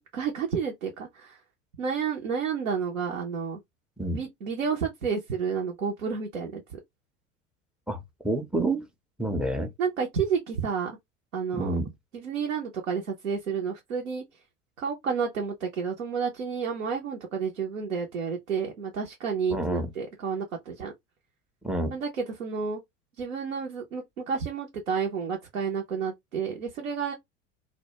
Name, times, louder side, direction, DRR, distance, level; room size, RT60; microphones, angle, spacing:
voice 1, 0.1-1.4 1.8-3.6 4.1-6.8 9.8-11.0 11.3-11.8 12.1-14.2 14.8-20.9 21.9-22.8 23.2-27.1, right 6 dB, 85° right, 0.6 m, -30 dB
voice 2, 8.2-8.9 9.2-9.7 11.5-11.9 19.5-19.9 21.6-21.9, right 1 dB, ahead, 0.4 m, -28 dB
2.1 x 2.1 x 2.8 m
figure-of-eight pair, 75°, 38 cm